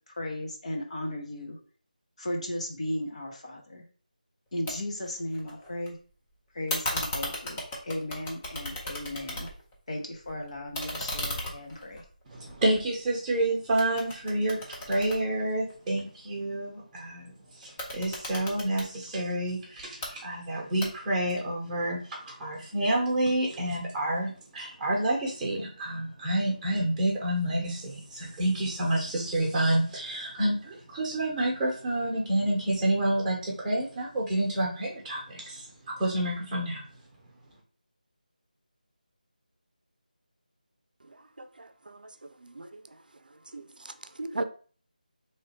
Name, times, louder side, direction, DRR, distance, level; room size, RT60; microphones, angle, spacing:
voice 1, 0.1-1.6 2.2-3.8 4.5-6.0 6.5-9.5 9.9-12.0, left 1 dB, 45° left, 0.9 m, -36 dB
sound 1, 4.7-4.8 5.1-5.9 6.7-9.8 10.1-13.4 13.8-16.0 17.6-18.9 19.8-20.1 20.8-21.3, left 1 dB, 10° left, 0.6 m, -36 dB
voice 2, 12.3-37.0 37.3-37.4, right 1 dB, 10° right, 1.1 m, -29 dB
voice 3, 41.1-42.1 42.4-42.8 43.5-44.4, right 2 dB, 75° right, 0.5 m, -38 dB
3.1 x 2.7 x 4.3 m
figure-of-eight pair, 170°, 5 cm